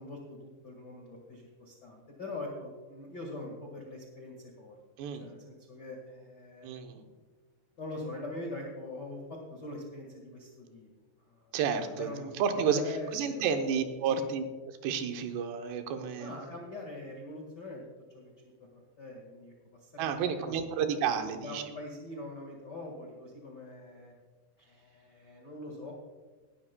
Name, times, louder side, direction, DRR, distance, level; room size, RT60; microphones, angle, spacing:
voice 1, 0.0-4.7 5.2-6.7 7.8-10.9 11.3-11.5 11.8-12.3 12.5-13.5 14.1-14.2 16.2-17.9 18.1-19.5 19.8-20.6 21.2-24.1 24.6-25.9, left 2 dB, 60° left, -1 dB, 1.1 m, -43 dB
voice 2, 6.6-7.0 11.5-16.3 20.0-21.6, right 6 dB, 85° right, 6 dB, 3.0 m, -31 dB
18.5 x 11.5 x 2.2 m, 1.3 s
omnidirectional pair, 4.7 m